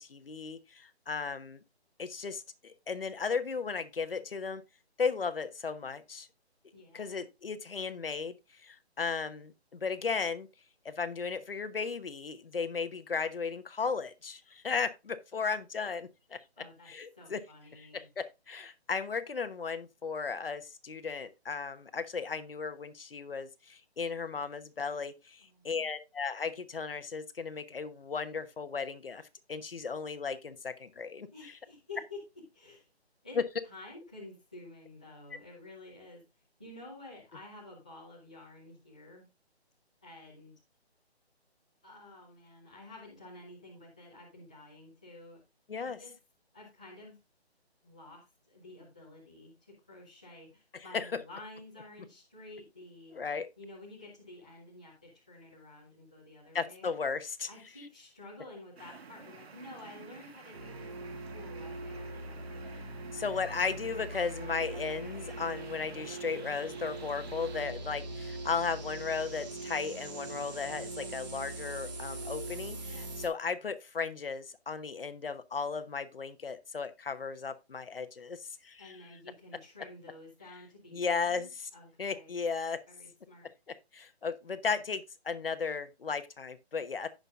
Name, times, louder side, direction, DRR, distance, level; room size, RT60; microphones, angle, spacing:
voice 1, 0.0-1.6 2.0-4.6 5.0-6.3 6.9-8.4 8.6-10.5 10.8-16.4 16.9-17.4 17.7-29.2 29.5-31.5 33.3-33.4 45.7-46.0 50.7-51.1 53.1-53.5 56.5-57.5 63.1-78.9 80.9-81.5 82.0-82.8 83.9-87.1, left 5 dB, 55° left, 1.1 m, -35 dB
voice 2, 6.7-7.3 16.6-16.9 17.2-18.1 25.4-25.9 31.3-32.2 32.5-32.8 33.2-33.4 33.6-36.2 36.6-39.3 40.0-40.5 41.8-45.4 45.8-46.2 46.5-47.2 47.8-53.2 53.6-56.9 57.5-62.6 72.9-73.1 78.8-82.4 82.9-83.5, left 2 dB, 5° left, 0.7 m, -51 dB
sound 1, 58.8-67.7, right 5 dB, 65° right, 1.6 m, -51 dB
sound 2, 60.5-73.3, right 2 dB, 40° right, 2.2 m, -42 dB
15.5 x 5.6 x 2.5 m
hypercardioid pair, 175°, 33 cm